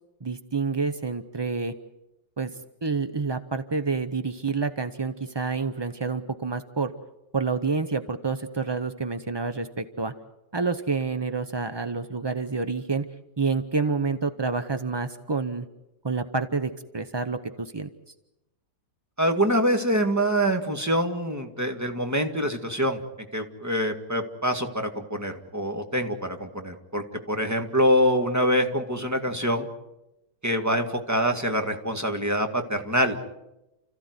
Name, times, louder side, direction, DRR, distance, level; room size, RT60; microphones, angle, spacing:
voice 1, 0.2-1.7 2.4-2.5 2.8-6.9 7.3-10.1 10.5-13.1 13.4-15.7 16.0-17.9, right 4 dB, 35° right, 10 dB, 0.4 m, -28 dB
voice 2, 19.2-23.0 23.3-29.7 30.4-33.2, equal, 10° right, 5 dB, 1.8 m, -25 dB
29.5 x 15.0 x 9.5 m, 0.95 s
omnidirectional pair, 1.8 m